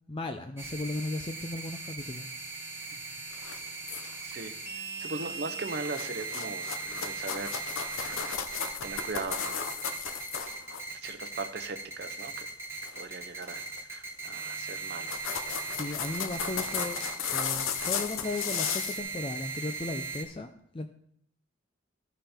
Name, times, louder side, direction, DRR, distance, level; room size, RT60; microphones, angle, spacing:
voice 1, 0.1-2.3 15.6-20.9, left 2 dB, 25° left, 7 dB, 0.4 m, -36 dB
sound 1, 0.6-20.2, right 4 dB, 10° right, 1.1 m, -39 dB
sound 2, 3.3-4.3 5.0-5.4 5.7-10.8 12.8-13.0 13.4-13.8 14.5-14.6 14.9-19.0, left 7 dB, 80° left, 0.8 m, -35 dB
voice 2, 4.2-7.6 8.0-8.3 8.8-9.6 11.0-12.5 13.0-13.6 13.9-15.2, right 3 dB, 50° right, 7 dB, 0.8 m, -39 dB
13.5 x 5.5 x 4.3 m, 0.65 s
head